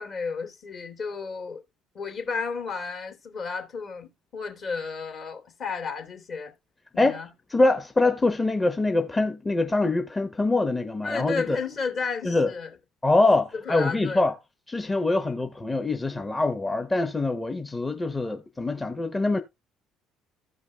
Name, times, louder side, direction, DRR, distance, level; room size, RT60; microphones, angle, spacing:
voice 1, 0.0-1.6 1.9-6.5 6.9-7.3 11.0-12.7 13.5-14.2 15.2-15.4, left 5 dB, 50° left, 2.9 m, -33 dB
voice 2, 7.5-11.6 12.2-12.5 13.0-14.3 14.7-19.4, left 2 dB, 20° left, 1.0 m, -24 dB
15.5 x 5.2 x 2.3 m
hypercardioid pair, 55°, 0 cm